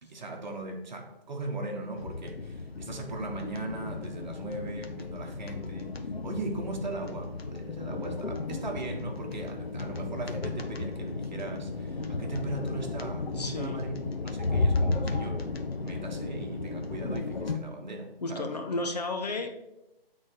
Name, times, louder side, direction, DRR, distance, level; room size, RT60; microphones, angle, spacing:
voice 1, 0.0-5.9 6.2-15.5 15.8-18.5, right 2 dB, 50° right, 2 dB, 1.5 m, -38 dB
sound 1, 2.0-17.6, left 3 dB, 85° left, 1.1 m, -34 dB
voice 2, 13.3-13.9 18.2-19.5, left 2 dB, 40° left, 4 dB, 0.9 m, -32 dB
8.7 x 4.2 x 5.0 m, 0.92 s
figure-of-eight pair, 160°, 30 cm